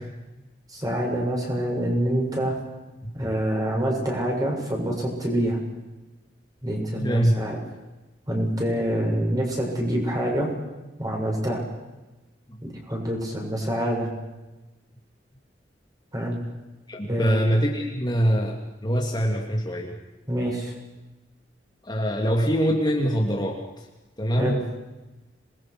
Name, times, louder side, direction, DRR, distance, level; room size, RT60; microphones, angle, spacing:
voice 1, 0.7-2.6 3.1-5.6 6.6-7.6 8.3-10.5 11.0-11.6 12.6-14.1 16.1-16.4 17.0-17.4 20.3-20.7 24.4-24.6, right 1 dB, 20° right, 0 dB, 7.2 m, -26 dB
voice 2, 7.0-7.3 12.5-12.6 16.9-20.0 21.8-23.9 24.2-24.6, equal, 25° left, 0 dB, 2.5 m, -24 dB
27.0 x 21.0 x 6.2 m, 1.1 s
head